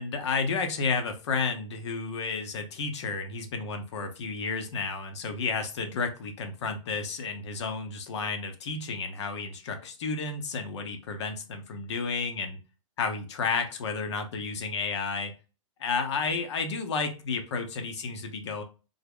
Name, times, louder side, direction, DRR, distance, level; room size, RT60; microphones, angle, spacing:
voice 1, 0.0-12.6 13.0-15.3 15.8-18.6, left 4 dB, 55° left, 7 dB, 0.8 m, -31 dB
3.6 x 2.1 x 3.5 m, 0.33 s
hypercardioid pair, 155°, 18 cm